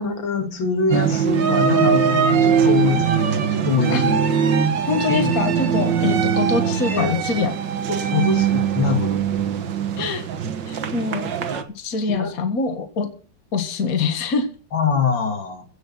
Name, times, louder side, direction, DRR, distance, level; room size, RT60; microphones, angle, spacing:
voice 1, 0.0-3.1 3.5-4.2 5.1-5.3 6.9-7.2 7.9-9.2 12.0-12.3 14.7-15.7, left 5 dB, 75° left, 7 dB, 2.8 m, -23 dB
sound 1, 0.9-11.6, right 7 dB, 65° right, 1.9 m, -21 dB
voice 2, 4.9-7.5 10.0-10.2 10.7-11.5 11.8-13.1 13.5-14.5, left 4 dB, 45° left, 7 dB, 2.0 m, -24 dB
16.0 x 8.0 x 6.0 m, 0.40 s
omnidirectional pair, 2.1 m